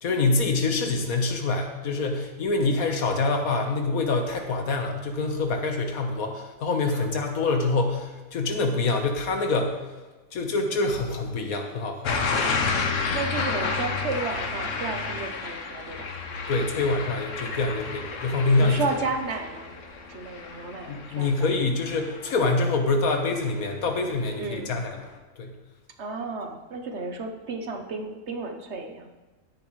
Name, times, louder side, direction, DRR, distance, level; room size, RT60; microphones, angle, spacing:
voice 1, 0.0-9.8 10.3-12.5 16.5-18.8 20.9-25.1 25.4-25.5, left 3 dB, 85° left, 4 dB, 1.7 m, -25 dB
sound 1, 12.0-22.9 23.3-23.7, left 4 dB, 65° left, 1.3 m, -31 dB
voice 2, 13.1-16.1 18.6-19.8 20.1-21.5 24.4-24.7 26.0-29.1, right 4 dB, 55° right, 5 dB, 1.2 m, -33 dB
13.0 x 9.9 x 3.2 m, 1.2 s
omnidirectional pair, 1.5 m